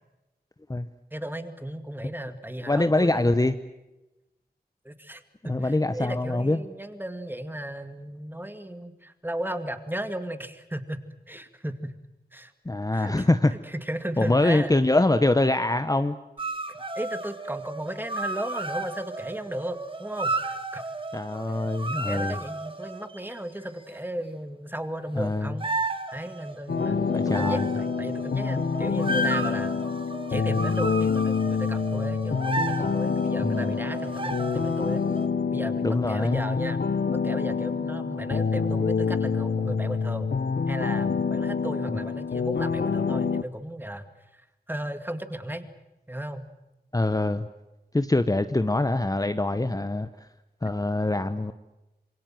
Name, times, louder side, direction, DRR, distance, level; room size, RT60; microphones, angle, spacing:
voice 1, 1.1-3.3 4.8-11.0 11.3-12.0 12.3-12.5 12.9-14.8 16.7-20.9 21.5-21.6 21.9-29.7 30.3-35.1 35.5-36.8 37.1-40.3 40.7-44.1 44.3-44.4 44.7-45.6 46.1-46.4, right 1 dB, 10° right, 9 dB, 2.3 m, -35 dB
voice 2, 2.7-3.5 5.5-6.6 12.6-13.5 14.2-16.2 21.1-22.3 25.1-25.5 26.9-27.7 33.4-33.8 35.8-36.4 41.9-42.0 46.9-47.5 47.9-50.1 50.6-51.5, left 2 dB, 20° left, 10 dB, 1.0 m, -24 dB
sound 1, 16.4-23.3 25.6-35.3, right 2 dB, 30° right, 2.0 m, -34 dB
sound 2, 26.7-43.4, left 5 dB, 75° left, 0.9 m, -27 dB
27.0 x 23.0 x 7.7 m, 1.0 s
wide cardioid pair, 80°, 17 cm